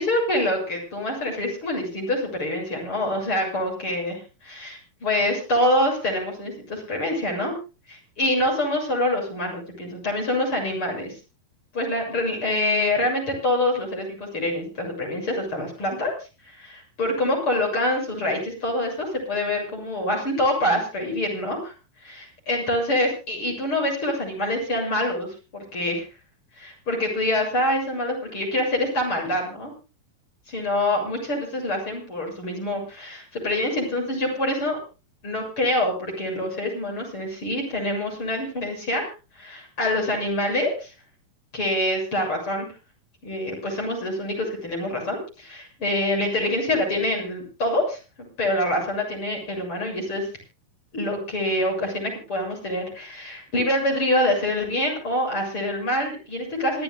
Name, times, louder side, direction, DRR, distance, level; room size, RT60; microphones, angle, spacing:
voice 1, 0.0-7.5 7.9-11.2 11.7-16.1 16.5-21.7 22.0-25.3 25.5-26.1 26.6-29.7 30.5-34.8 35.2-40.9 41.5-42.7 43.2-48.0 48.4-50.3 50.9-56.8, left 1 dB, 35° left, 1 dB, 8.2 m, -25 dB
26.5 x 14.0 x 2.3 m, 0.32 s
omnidirectional pair, 4.2 m